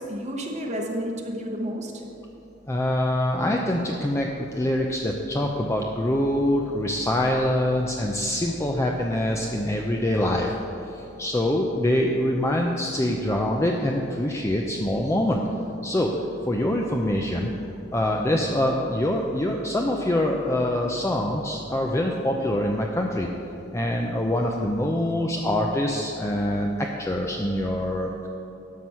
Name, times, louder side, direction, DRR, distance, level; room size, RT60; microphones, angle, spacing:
voice 1, 0.0-2.0 22.1-22.4, equal, 35° right, 1 dB, 0.9 m, -31 dB
voice 2, 2.7-10.5 10.9-15.4 15.8-17.5 17.9-23.3 23.7-28.3, left 1 dB, 15° left, 0 dB, 0.5 m, -25 dB
12.0 x 6.0 x 5.5 m, 2.8 s
head